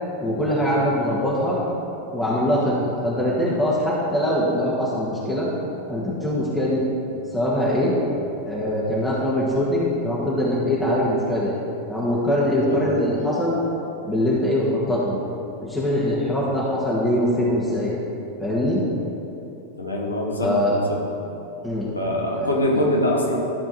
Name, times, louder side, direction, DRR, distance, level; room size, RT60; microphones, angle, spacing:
voice 1, 0.2-1.6 2.1-5.5 5.9-6.8 7.3-8.0 8.4-11.6 11.9-13.6 14.1-15.2 15.6-17.9 18.4-18.8 20.4-20.8 21.6-21.9 22.4-22.8, left 1 dB, 5° left, -7 dB, 1.7 m, -22 dB
voice 2, 19.8-21.3 21.9-23.4, left 1 dB, 80° left, -1 dB, 1.4 m, -24 dB
12.5 x 4.4 x 6.4 m, 2.9 s
figure-of-eight pair, 90°, 0 cm